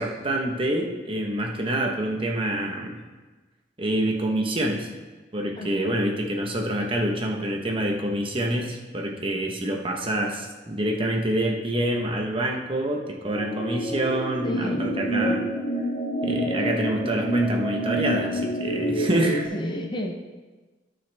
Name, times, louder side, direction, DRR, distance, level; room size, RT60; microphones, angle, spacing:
voice 1, 0.0-3.0 3.8-4.9 5.3-15.5 16.2-19.5, right 1 dB, 30° right, 1 dB, 1.2 m, -26 dB
voice 2, 5.6-5.9 14.4-14.9 19.3-20.1, left 1 dB, 25° left, 3 dB, 0.8 m, -32 dB
sound 1, 13.3-19.5, equal, 50° left, 1.4 m, -27 dB
16.0 x 6.4 x 3.5 m, 1.3 s
head